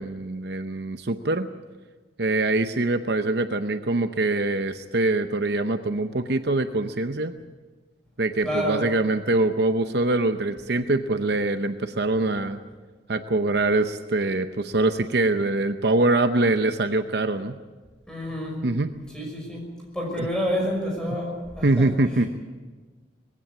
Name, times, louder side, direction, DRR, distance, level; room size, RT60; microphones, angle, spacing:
voice 1, 0.0-1.5 2.2-7.3 8.2-12.6 13.1-17.6 18.6-18.9 20.2-20.3 21.6-22.3, right 2 dB, 55° right, 8 dB, 0.8 m, -24 dB
voice 2, 8.4-8.9 18.1-18.6 19.1-19.7 19.9-21.9, equal, 5° left, -1 dB, 5.7 m, -28 dB
20.5 x 16.5 x 8.4 m, 1.3 s
head